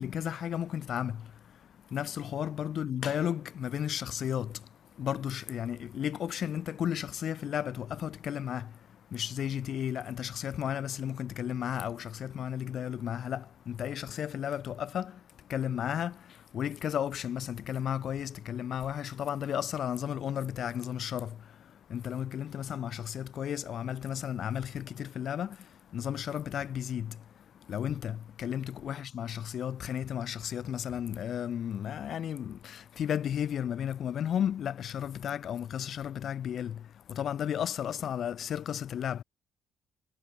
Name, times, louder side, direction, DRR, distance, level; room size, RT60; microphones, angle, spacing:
voice 1, 0.0-39.2, left 9 dB, 50° left, 3.7 m, -34 dB
cardioid pair, 135°, 0 cm